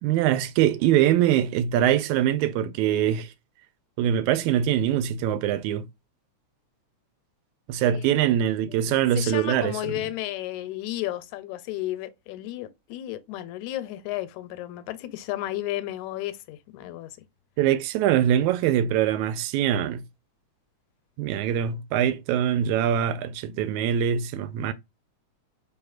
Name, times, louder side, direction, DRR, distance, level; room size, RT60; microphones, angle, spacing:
voice 1, 0.0-3.3 4.0-5.9 7.7-9.8 17.6-20.0 21.2-24.7, right 10 dB, 85° right, 1.9 m, -23 dB
voice 2, 7.8-8.3 8.7-17.1, left 15 dB, 85° left, 1.9 m, -33 dB
4.1 x 3.5 x 2.3 m
omnidirectional pair, 3.4 m